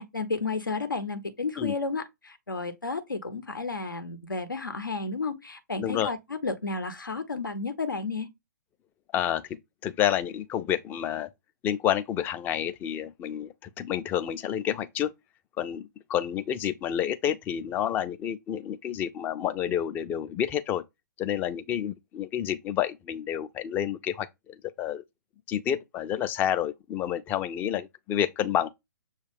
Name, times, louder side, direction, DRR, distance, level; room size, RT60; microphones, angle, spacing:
voice 1, 0.0-8.3, left 3 dB, 85° left, 0.8 m, -32 dB
voice 2, 5.8-6.1 9.1-9.4 9.8-11.3 11.6-15.1 15.6-20.8 21.2-24.3 24.8-25.0 25.5-28.7, left 10 dB, 15° left, 0.3 m, -29 dB
6.4 x 2.4 x 3.4 m
figure-of-eight pair, 125°, 11 cm